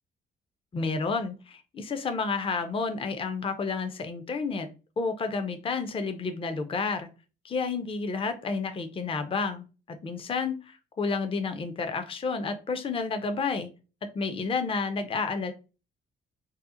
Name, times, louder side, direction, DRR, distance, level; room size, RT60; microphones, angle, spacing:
voice 1, 0.7-4.7 5.0-7.1 7.4-13.7 14.1-15.5, left 4 dB, 25° left, 8 dB, 0.5 m, -30 dB
2.7 x 2.0 x 3.6 m, 0.32 s
cardioid pair, 90°, 20 cm